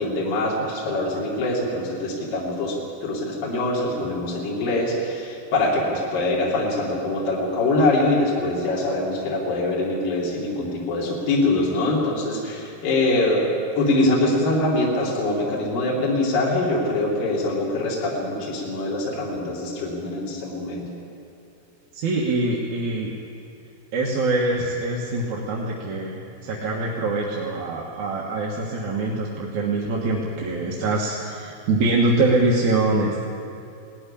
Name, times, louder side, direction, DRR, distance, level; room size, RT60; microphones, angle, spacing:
voice 1, 0.0-13.5 13.8-20.9, left 2 dB, 65° left, -5 dB, 4.6 m, -23 dB
voice 2, 21.9-23.1 23.9-33.2, right 2 dB, 60° right, -3 dB, 2.6 m, -24 dB
18.5 x 14.5 x 9.9 m, 2.6 s
omnidirectional pair, 4.3 m